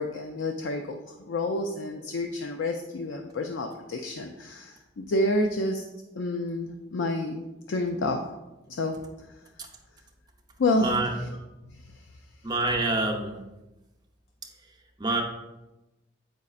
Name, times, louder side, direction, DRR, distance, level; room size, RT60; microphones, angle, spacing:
voice 1, 0.0-5.9 6.2-8.2 8.7-9.0 9.3-9.4 10.6-11.0 11.7-12.1, left 2 dB, 85° left, 3 dB, 0.5 m, -29 dB
voice 2, 10.7-11.1 12.4-13.3 14.6-15.2, right 2 dB, 20° right, 1 dB, 0.7 m, -27 dB
7.4 x 5.3 x 2.4 m, 1.0 s
head